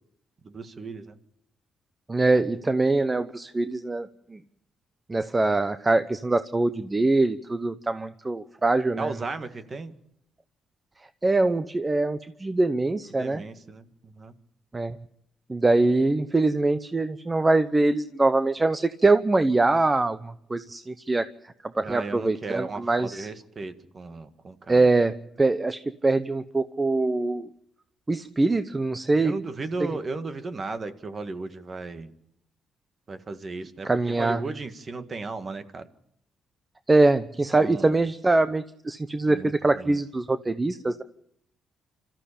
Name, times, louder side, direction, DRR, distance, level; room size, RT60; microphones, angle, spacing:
voice 1, 0.4-1.2 9.0-9.9 13.2-14.3 21.8-24.9 29.2-32.1 33.1-35.9 37.6-38.0 39.3-40.0, right 3 dB, 35° right, 9 dB, 1.9 m, -35 dB
voice 2, 2.1-4.4 5.1-9.1 11.2-13.4 14.7-15.0 15.5-21.3 21.7-23.3 24.7-27.5 28.1-29.3 29.8-30.0 33.8-34.4 36.9-41.0, right 2 dB, 20° right, 11 dB, 0.8 m, -23 dB
26.5 x 14.0 x 8.6 m, 0.75 s
cardioid pair, 90°, 0 cm